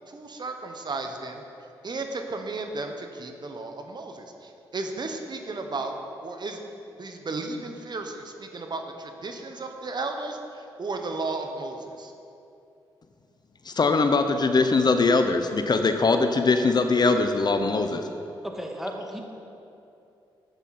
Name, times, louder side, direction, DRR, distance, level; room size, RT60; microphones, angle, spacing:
voice 1, 0.1-1.4 1.8-6.0 6.2-6.6 7.0-12.1, right 3 dB, 45° right, 4 dB, 1.1 m, -34 dB
voice 2, 13.7-18.0, left 3 dB, 45° left, 7 dB, 0.7 m, -21 dB
voice 3, 18.4-19.2, equal, 5° right, 1 dB, 1.7 m, -34 dB
11.5 x 8.4 x 4.3 m, 2.7 s
supercardioid pair, 50°, 10 cm